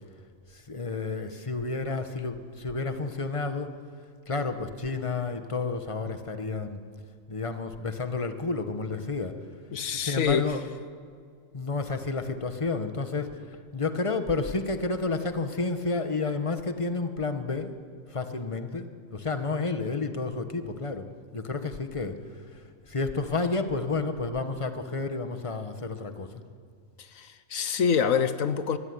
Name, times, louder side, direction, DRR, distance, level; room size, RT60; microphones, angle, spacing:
voice 1, 0.5-3.7 4.3-6.8 7.3-9.4 10.0-10.6 11.5-17.8 18.1-21.0 21.3-26.4, left 3 dB, 25° left, 1.6 m, -31 dB
voice 2, 9.7-10.5 27.0-28.8, left 7 dB, 85° left, 1.4 m, -26 dB
24.5 x 23.5 x 9.8 m
omnidirectional pair, 1.4 m